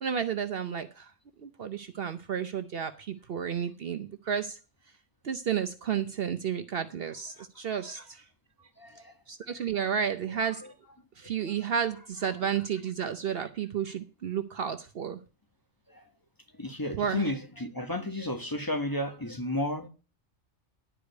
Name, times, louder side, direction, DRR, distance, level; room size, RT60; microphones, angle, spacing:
voice 1, 0.0-1.1 1.4-4.6 5.2-8.2 9.3-10.7 11.2-15.2 16.9-17.3, right 8 dB, 55° right, 0.8 m, -32 dB
voice 2, 16.6-19.9, left 1 dB, 20° left, 1.1 m, -32 dB
11.0 x 4.9 x 8.0 m
omnidirectional pair, 1.3 m